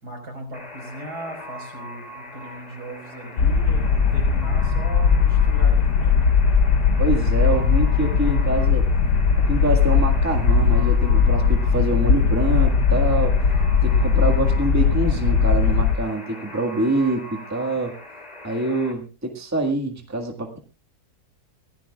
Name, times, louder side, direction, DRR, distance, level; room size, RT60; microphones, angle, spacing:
voice 1, 0.0-6.3, right 1 dB, 75° right, 3 dB, 5.4 m, -38 dB
Alarm, 0.5-18.9, left 1 dB, 25° left, 2.8 m, -40 dB
sound 1, 3.4-15.9, left 6 dB, 85° left, 1.6 m, -19 dB
voice 2, 7.0-8.9 9.5-13.4 13.8-18.0 18.4-20.6, right 2 dB, 10° right, 3 dB, 1.6 m, -25 dB
24.5 x 15.0 x 2.4 m, 0.31 s
omnidirectional pair, 1.7 m